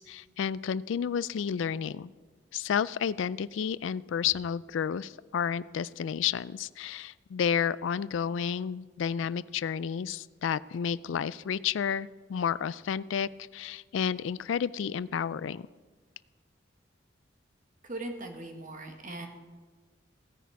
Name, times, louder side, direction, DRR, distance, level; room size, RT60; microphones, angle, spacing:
voice 1, 0.0-2.1 2.5-15.6, left 7 dB, 80° left, 19 dB, 0.4 m, -31 dB
voice 2, 17.8-19.3, right 2 dB, 45° right, 4 dB, 1.7 m, -39 dB
16.5 x 10.0 x 4.7 m, 1.4 s
head